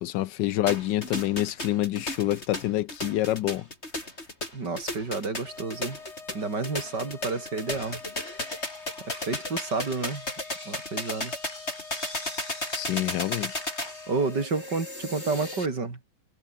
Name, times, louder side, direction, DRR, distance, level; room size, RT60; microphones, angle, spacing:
voice 1, 0.0-3.6 12.7-13.6, left 14 dB, 75° left, 1.2 m, -27 dB
sound 1, 0.7-15.7, left 1 dB, 35° left, 7.5 m, -35 dB
voice 2, 4.5-6.0 6.3-8.0 9.0-10.3 10.7-11.3 14.1-16.0, right 4 dB, 60° right, 4.3 m, -30 dB
sound 2, 5.5-14.5, left 4 dB, 60° left, 3.5 m, -46 dB
omnidirectional pair, 2.1 m